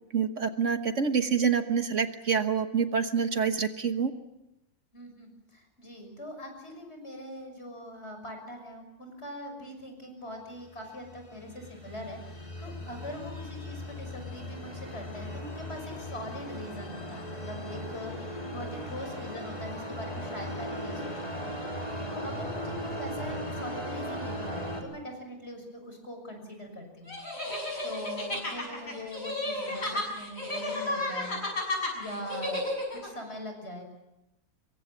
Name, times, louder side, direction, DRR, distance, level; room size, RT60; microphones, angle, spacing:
voice 1, 0.1-4.1, right 6 dB, 60° right, 8 dB, 1.5 m, -27 dB
voice 2, 4.9-21.5 22.1-27.2 27.8-31.4 31.9-33.8, equal, 45° left, 4 dB, 6.4 m, -42 dB
sound 1, 10.7-24.8, equal, 25° left, 4.1 m, -38 dB
sound 2, 27.1-33.1, left 2 dB, 70° left, 6.9 m, -33 dB
25.5 x 23.0 x 7.3 m, 0.91 s
omnidirectional pair, 1.5 m